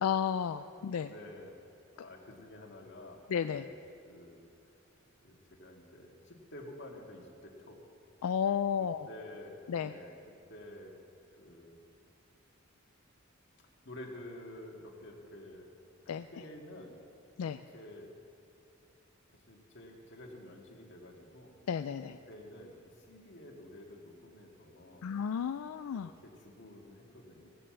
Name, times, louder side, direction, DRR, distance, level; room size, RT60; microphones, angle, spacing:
voice 1, 0.0-1.1 3.3-3.7 8.2-9.1 9.7-9.9 16.1-16.3 17.4-17.6 21.7-22.2 25.0-26.1, left 7 dB, 85° left, 9 dB, 0.4 m, -32 dB
voice 2, 0.9-1.5 1.9-3.2 3.5-3.8 4.0-4.4 5.2-7.8 8.8-10.1 10.5-11.0 11.4-11.8 13.9-15.7 16.3-16.9 17.7-18.1 19.5-21.6 22.3-25.1 25.9-27.5, left 1 dB, 55° left, 0 dB, 1.9 m, -50 dB
17.0 x 6.8 x 7.5 m, 2.7 s
head